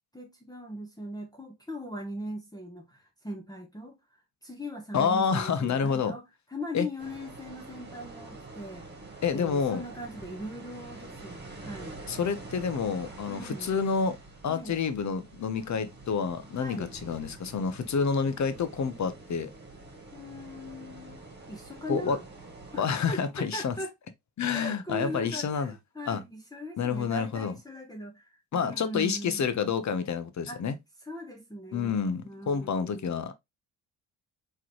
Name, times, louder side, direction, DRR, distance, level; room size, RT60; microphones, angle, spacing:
voice 1, 0.1-6.2 6.5-8.9 9.3-12.0 13.3-13.8 14.5-14.9 16.6-16.9 20.1-21.2 21.5-22.3 22.7-23.9 24.5-29.5 30.5-30.7 31.0-33.2, left 1 dB, 10° left, 1.1 m, -40 dB
voice 2, 4.9-6.2 6.7-6.9 9.2-9.8 12.1-14.2 14.4-19.5 21.9-22.2 22.8-23.7 24.4-25.7 26.1-26.2 26.8-27.5 28.5-30.7 31.7-33.3, left 6 dB, 40° left, 0.9 m, -28 dB
sound 1, 7.0-22.8, right 2 dB, 25° right, 2.0 m, -46 dB
3.7 x 3.2 x 3.0 m
supercardioid pair, 70°, 42 cm